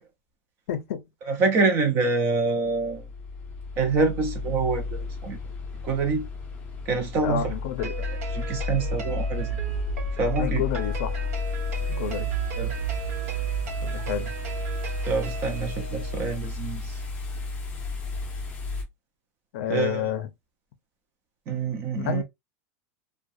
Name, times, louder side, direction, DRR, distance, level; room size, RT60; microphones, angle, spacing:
voice 1, 0.7-1.0 7.2-7.9 10.4-11.3 11.9-12.3 13.8-14.3 19.5-20.3 22.0-22.2, left 10 dB, 65° left, 0.5 m, -29 dB
voice 2, 1.3-3.1 3.8-5.4 5.8-6.2 6.9-7.5 8.3-9.6 10.2-10.6 12.6-12.7 15.1-17.0 19.7-20.1 21.5-22.2, right 4 dB, 25° right, 0.5 m, -26 dB
sound 1, 2.6-18.8, left 1 dB, 15° left, 0.6 m, -32 dB
sound 2, 7.8-16.2, right 4 dB, 75° right, 0.7 m, -39 dB
2.4 x 2.2 x 2.5 m
supercardioid pair, 180°, 8 cm